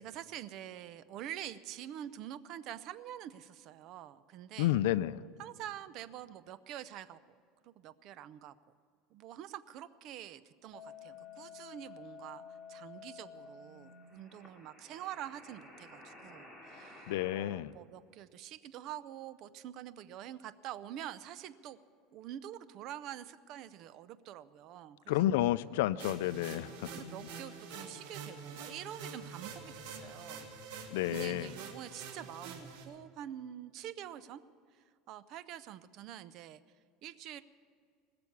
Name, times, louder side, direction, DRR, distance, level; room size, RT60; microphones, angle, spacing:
voice 1, 0.0-4.7 5.4-7.2 7.6-8.5 9.1-12.4 12.7-21.8 22.1-25.5 26.6-30.5 30.7-34.4 35.1-36.6 37.0-37.4, right 11 dB, 45° right, 15 dB, 0.5 m, -46 dB
voice 2, 4.6-5.2 17.1-17.7 25.1-26.9 30.9-31.5, left 14 dB, 80° left, 15 dB, 0.4 m, -30 dB
sound 1, 10.7-17.4, left 5 dB, ahead, 2.7 m, -52 dB
sound 2, 26.0-32.8, right 5 dB, 85° right, 2.7 m, -46 dB
20.0 x 6.9 x 9.6 m, 2.2 s
cardioid pair, 165°, 0 cm